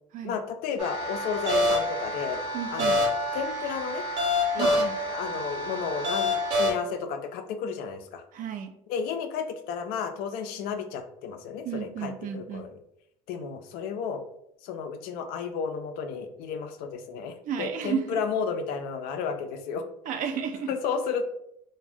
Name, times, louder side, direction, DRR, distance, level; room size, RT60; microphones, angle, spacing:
voice 1, 0.2-2.4 2.7-4.0 4.5-8.2 8.9-12.8 13.3-14.2 14.6-19.8 20.7-21.2, left 6 dB, 70° left, 7 dB, 0.4 m, -32 dB
sound 1, 0.8-6.7, left 1 dB, 80° right, 0.9 m, -27 dB
voice 2, 2.5-3.0 4.6-4.9 8.3-8.7 11.6-12.6 17.4-18.2 20.1-20.7, right 8 dB, 55° right, 7 dB, 0.5 m, -32 dB
2.4 x 2.2 x 3.4 m, 0.77 s
hypercardioid pair, 70°, 16 cm